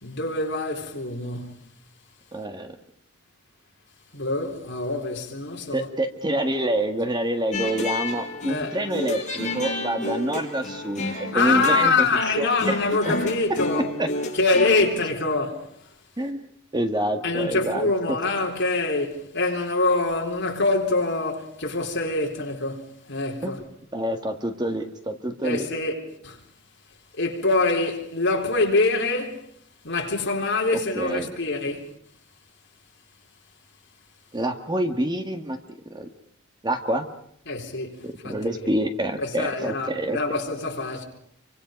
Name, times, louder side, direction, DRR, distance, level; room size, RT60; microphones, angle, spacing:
voice 1, 0.0-1.7 4.1-5.9 8.5-8.8 11.3-13.9 14.3-15.7 17.2-23.6 25.4-26.0 26.2-26.4 27.2-29.4 29.8-31.9 37.5-38.7 39.2-41.0, left 3 dB, 60° left, 4.0 m, -25 dB
voice 2, 2.3-2.8 5.7-12.1 12.4-12.8 13.1-13.2 14.0-14.1 16.2-16.4 16.7-17.9 23.4-23.6 23.9-25.7 30.9-31.3 34.3-36.1 36.6-37.1 38.0-40.2, right 1 dB, 20° right, 1.6 m, -27 dB
sound 1, 7.5-14.9, left 2 dB, 35° left, 5.9 m, -31 dB
28.0 x 25.0 x 5.2 m
head